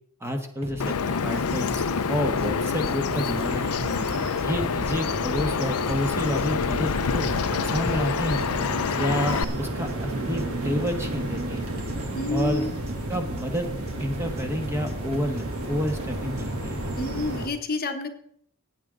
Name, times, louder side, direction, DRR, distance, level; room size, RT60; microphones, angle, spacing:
voice 1, 0.2-3.8 4.4-8.5 8.9-11.7 12.3-12.7 13.1-13.7 14.0-16.8, equal, 10° right, 4 dB, 1.3 m, -30 dB
sound 1, 0.6-16.6, right 2 dB, 30° right, 0.7 m, -41 dB
Bird vocalization bird call bird song, 0.8-9.4, left 6 dB, 85° left, 0.6 m, -27 dB
sound 2, 1.3-17.5, right 1 dB, 70° right, 2.6 m, -33 dB
voice 2, 3.9-4.2 12.1-12.7 17.0-18.1, left 3 dB, 40° left, 6 dB, 1.0 m, -29 dB
15.5 x 9.3 x 3.8 m, 0.67 s
head